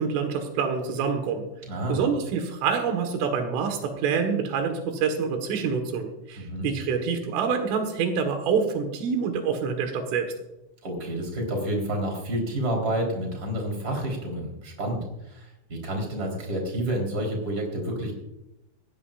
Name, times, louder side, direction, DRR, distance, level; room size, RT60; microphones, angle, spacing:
voice 1, 0.0-1.5 1.9-10.3, right 6 dB, 85° right, 5 dB, 4.1 m, -26 dB
voice 2, 1.7-2.0 6.4-6.7 10.8-15.0 15.3-18.1, right 1 dB, 20° right, 0 dB, 3.9 m, -29 dB
19.0 x 16.0 x 2.5 m, 0.90 s
omnidirectional pair, 5.5 m